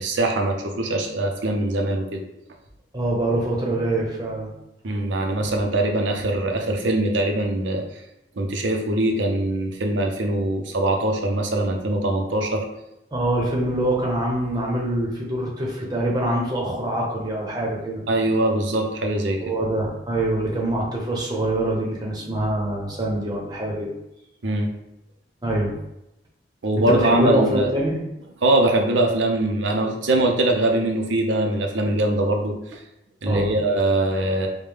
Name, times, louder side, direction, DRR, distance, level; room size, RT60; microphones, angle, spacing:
voice 1, 0.0-2.2 4.8-7.8 8.4-12.7 18.1-19.5 24.4-24.7 26.6-27.7 28.4-32.8 33.2-34.5, right 1 dB, 90° right, 3 dB, 0.6 m, -22 dB
voice 2, 2.9-4.5 13.1-18.0 19.4-23.9 25.4-25.7 26.9-28.0 33.3-33.5, right 1 dB, 20° right, -3 dB, 0.8 m, -24 dB
4.9 x 2.2 x 3.4 m, 0.87 s
head